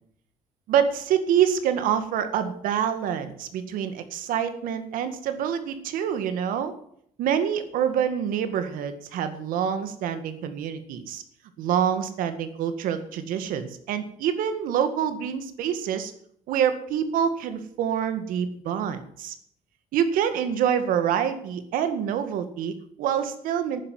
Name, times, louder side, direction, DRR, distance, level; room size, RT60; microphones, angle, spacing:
voice 1, 0.7-6.7 7.2-11.2 11.6-16.1 16.5-19.3 19.9-23.8, right 8 dB, 85° right, 9 dB, 1.9 m, -26 dB
11.5 x 10.0 x 7.7 m, 0.66 s
cardioid pair, 170°, 14 cm